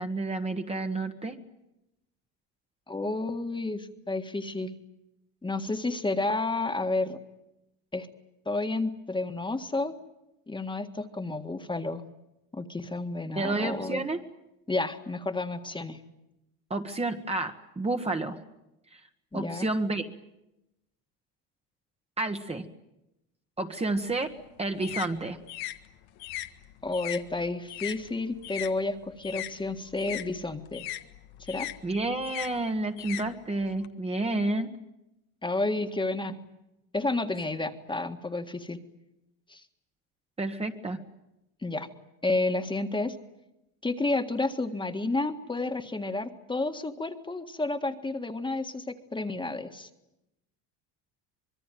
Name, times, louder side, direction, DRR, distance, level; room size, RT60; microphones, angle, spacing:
voice 1, 0.0-1.4 13.3-14.2 16.7-18.4 18.9-19.0 19.3-20.1 22.2-22.7 23.6-24.3 24.6-25.4 31.8-34.7 40.4-41.0, right 2 dB, 15° right, 5 dB, 1.5 m, -30 dB
voice 2, 2.9-4.8 5.4-7.2 7.9-8.1 8.5-9.9 10.5-12.0 12.5-14.0 14.7-16.0 19.3-19.7 26.8-30.8 31.5-31.7 35.4-36.4 36.9-38.8 39.5-39.6 41.6-41.9 42.2-43.2 43.8-49.9, left 2 dB, 15° left, 6 dB, 1.7 m, -31 dB
sound 1, 24.0-28.7 29.0-33.9, left 15 dB, 80° left, 1.7 m, -39 dB
25.5 x 22.0 x 9.2 m, 0.89 s
cardioid pair, 130°, 38 cm